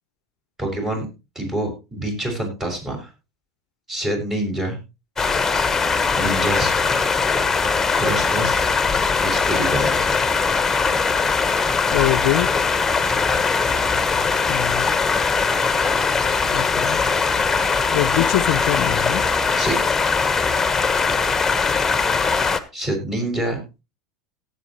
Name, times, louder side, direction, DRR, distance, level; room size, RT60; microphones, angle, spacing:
voice 1, 0.6-1.1 1.3-3.1 3.9-4.8 6.2-6.9 7.9-8.6 9.2-10.0 19.6-19.8 22.7-23.6, right 1 dB, 20° right, 6.4 m, -26 dB
sound 1, 5.2-22.6, left 4 dB, 15° left, 1.2 m, -20 dB
voice 2, 11.9-12.5 14.5-14.9 16.5-17.0 17.9-19.3, left 18 dB, 65° left, 0.5 m, -23 dB
18.0 x 8.1 x 3.1 m
hypercardioid pair, 90°, 2 cm